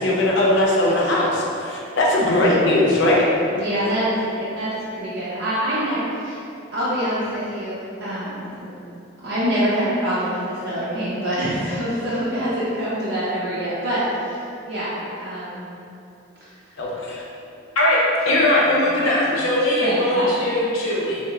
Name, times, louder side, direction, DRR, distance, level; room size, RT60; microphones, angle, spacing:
voice 1, 0.0-3.2 16.8-17.2, left 1 dB, 60° left, -4 dB, 0.6 m, -19 dB
voice 2, 3.5-4.7 5.0-6.4 6.7-8.7 9.2-14.0 14.6-15.7 19.8-20.3, equal, 60° right, -10 dB, 0.6 m, -25 dB
voice 3, 18.2-21.2, left 1 dB, 85° left, -6 dB, 0.9 m, -19 dB
3.4 x 2.7 x 2.9 m, 2.6 s
head